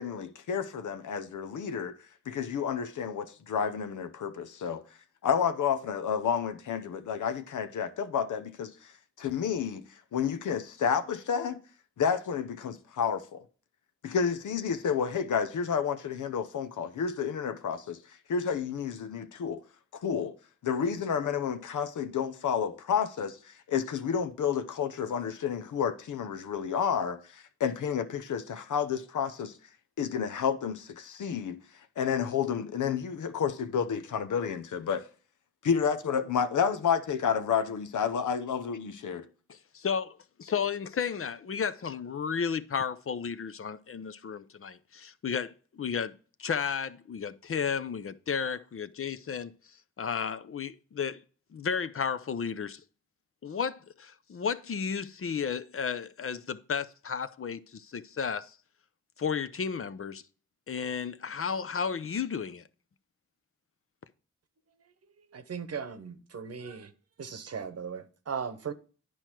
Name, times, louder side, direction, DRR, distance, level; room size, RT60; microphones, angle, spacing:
voice 1, 0.0-1.9 2.3-4.8 5.2-8.9 9.2-9.8 10.1-11.6 12.0-13.4 14.0-18.0 18.3-19.6 19.9-20.4 20.6-29.6 30.0-31.6 32.0-35.0 35.6-39.3, left 7 dB, 80° left, 0.8 m, -30 dB
voice 2, 39.5-46.1 46.4-51.2 51.5-52.8 53.4-58.6 59.2-60.2 60.7-62.6, left 6 dB, 45° left, 0.6 m, -33 dB
voice 3, 65.3-66.9 67.2-68.7, right 6 dB, 55° right, 1.0 m, -37 dB
9.9 x 4.6 x 4.5 m
cardioid pair, 50°, 30 cm